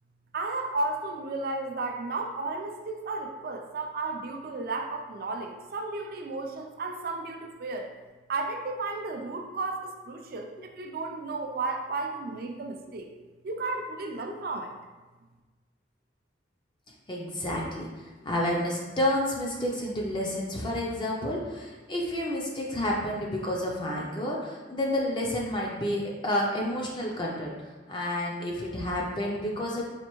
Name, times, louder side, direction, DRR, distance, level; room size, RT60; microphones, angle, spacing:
voice 1, 0.3-7.9 8.3-13.1 13.4-14.7, right 3 dB, 50° right, 3 dB, 0.4 m, -33 dB
voice 2, 17.1-29.8, left 1 dB, 25° left, -2 dB, 0.4 m, -30 dB
4.2 x 2.6 x 3.0 m, 1.3 s
head